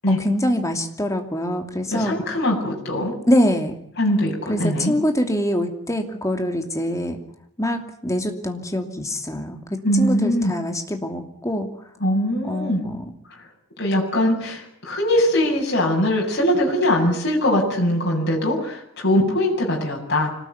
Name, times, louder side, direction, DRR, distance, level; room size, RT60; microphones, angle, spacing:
voice 1, 0.1-2.1 3.3-3.7 4.5-7.2 7.6-11.7 12.5-13.0, equal, 15° left, 4 dB, 2.8 m, -24 dB
voice 2, 1.9-3.1 4.0-4.9 9.8-10.5 12.0-12.8 13.8-20.3, left 1 dB, 50° left, -1 dB, 7.9 m, -21 dB
25.5 x 19.5 x 9.5 m, 0.68 s
head